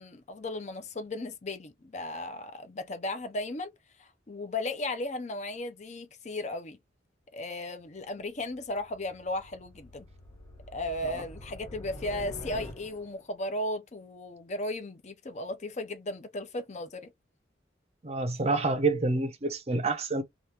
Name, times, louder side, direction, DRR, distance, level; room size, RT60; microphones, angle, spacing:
voice 1, 0.0-3.7 4.0-6.8 7.3-10.1 10.7-17.1, left 2 dB, 35° left, 0.5 m, -36 dB
sound 1, 8.0-13.3, left 1 dB, 15° left, 1.2 m, -46 dB
voice 2, 18.0-20.2, right 3 dB, 35° right, 0.5 m, -28 dB
2.9 x 2.4 x 3.3 m
head